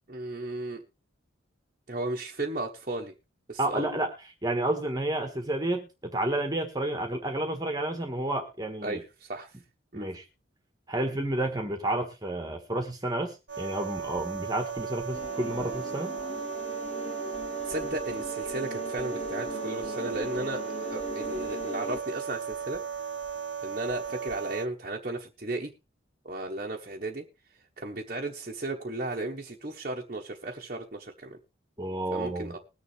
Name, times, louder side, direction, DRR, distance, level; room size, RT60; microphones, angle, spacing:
voice 1, 0.1-0.8 1.9-3.1 3.5-3.9 8.8-9.6 9.9-10.1 17.6-22.8 23.6-25.7 26.2-27.2 27.8-31.4 32.1-32.6, right 2 dB, 40° right, -1 dB, 1.1 m, -35 dB
voice 2, 3.6-4.1 4.4-9.0 9.9-10.2 10.9-16.1 31.8-32.5, right 1 dB, 20° right, 5 dB, 1.4 m, -30 dB
sound 1, 13.5-24.7, right 7 dB, 70° right, 1.0 m, -36 dB
sound 2, 15.1-22.0, left 1 dB, 35° left, 0.8 m, -39 dB
21.0 x 7.1 x 3.3 m, 0.28 s
head